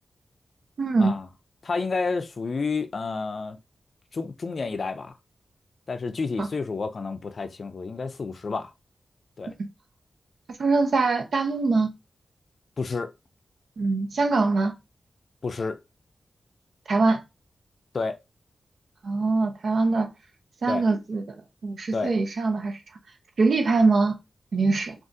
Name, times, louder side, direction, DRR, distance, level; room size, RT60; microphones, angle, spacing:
voice 1, 0.8-1.1 6.4-6.5 10.6-11.9 13.8-14.7 16.9-17.2 19.0-20.1 20.6-21.2 21.6-22.8 23.4-24.1 24.5-24.9, right 3 dB, 75° right, 0.7 m, -23 dB
voice 2, 1.6-3.6 4.1-5.2 5.9-8.7 9.4-9.5 12.8-13.1 15.4-15.8 17.9-18.2 20.7-20.9 21.9-22.1, left 4 dB, 55° left, 0.4 m, -30 dB
3.6 x 2.4 x 2.6 m
wide cardioid pair, 100°, 0 cm